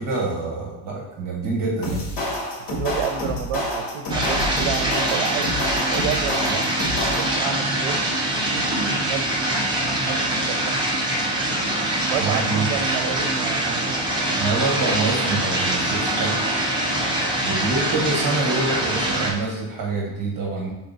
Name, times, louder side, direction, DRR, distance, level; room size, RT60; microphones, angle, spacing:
voice 1, 0.0-2.0 6.5-6.6 12.2-12.7 14.3-16.4 17.4-20.7, right 3 dB, 40° right, -3 dB, 1.3 m, -26 dB
sound 1, 1.8-7.5, left 1 dB, 65° left, 1.8 m, -28 dB
voice 2, 2.7-5.5 5.9-6.7 7.2-8.1 8.3-10.9 12.1-14.2 17.1-17.3, right 8 dB, 75° right, 6 dB, 0.7 m, -30 dB
sound 2, 4.1-19.3, right 1 dB, 10° right, 0.8 m, -24 dB
5.8 x 4.1 x 4.0 m, 1.0 s
cardioid pair, 170°, 50 cm